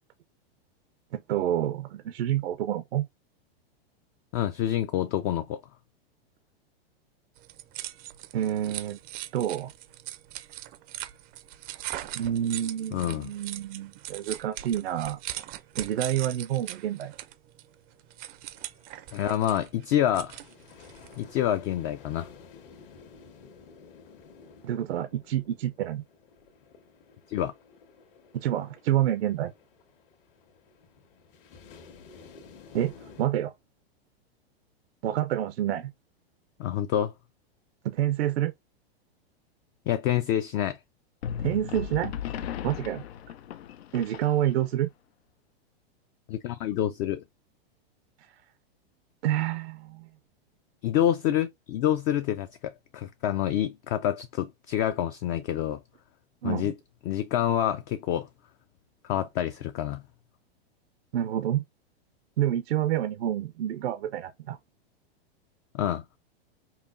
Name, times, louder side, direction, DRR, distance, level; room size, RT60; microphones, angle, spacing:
voice 1, 1.1-3.1 8.3-9.0 9.3-9.7 12.1-15.2 15.8-17.1 24.6-26.0 28.3-29.5 32.7-33.5 35.0-35.9 37.8-38.5 41.4-42.1 42.6-43.0 43.9-44.9 49.2-50.1 56.4-56.7 61.1-61.6 62.4-64.6, right 11 dB, 80° right, 0.6 m, -28 dB
voice 2, 4.3-5.6 12.9-13.3 19.1-20.4 21.2-22.3 27.3-27.5 36.6-37.1 39.9-40.8 46.3-47.2 50.8-55.8 56.4-56.7 57.0-58.3 59.0-60.0 65.7-66.0, left 11 dB, 35° left, 0.4 m, -27 dB
sound 1, 7.4-21.2, right 14 dB, 30° right, 0.4 m, -40 dB
sound 2, 17.8-33.3, left 5 dB, 60° left, 1.5 m, -53 dB
sound 3, 41.2-44.7, left 9 dB, 85° left, 0.6 m, -36 dB
5.6 x 2.3 x 2.4 m
hypercardioid pair, 130°, 31 cm